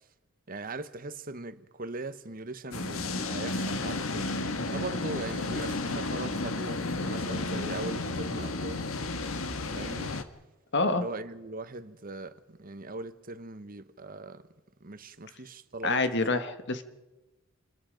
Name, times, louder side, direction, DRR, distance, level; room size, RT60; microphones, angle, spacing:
voice 1, 0.5-4.3 4.7-8.8 9.7-10.1 10.9-14.5 14.8-16.2, right 2 dB, 45° right, 1.2 m, -40 dB
sound 1, 2.7-10.2, left 2 dB, 90° left, 1.6 m, -32 dB
voice 2, 10.7-11.1 15.8-16.8, left 3 dB, 60° left, 1.6 m, -27 dB
27.5 x 22.0 x 5.2 m
head